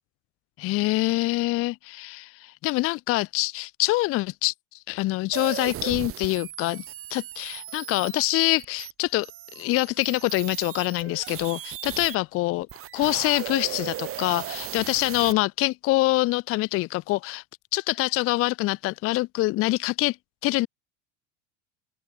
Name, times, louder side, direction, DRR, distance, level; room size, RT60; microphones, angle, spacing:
voice 1, 0.6-4.5 4.9-6.8 7.1-9.3 9.6-12.7 12.9-17.4 17.7-20.2 20.4-20.7, left 20 dB, 40° left, 0.5 m, -25 dB
sound 1, 5.3-12.2 12.6-15.3, right 12 dB, 40° right, 1.6 m, -37 dB
open air
supercardioid pair, 105°, 34 cm